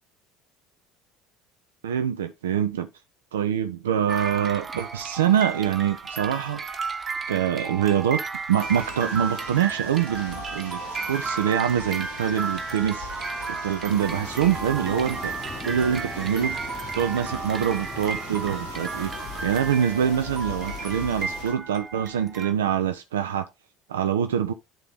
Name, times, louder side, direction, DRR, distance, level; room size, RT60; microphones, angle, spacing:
voice 1, 1.8-2.9 3.3-6.6 7.3-8.2 8.5-15.3 15.6-16.6 16.9-23.5 23.9-24.5, right 9 dB, 70° right, 0.4 m, -25 dB
sound 1, 4.1-22.5, right 4 dB, 25° right, 1.0 m, -33 dB
sound 2, 8.6-21.5, left 3 dB, 70° left, 5.4 m, -41 dB
sound 3, 13.9-21.4, left 4 dB, 25° left, 1.1 m, -41 dB
10.0 x 3.9 x 3.4 m
figure-of-eight pair, 65°, 0 cm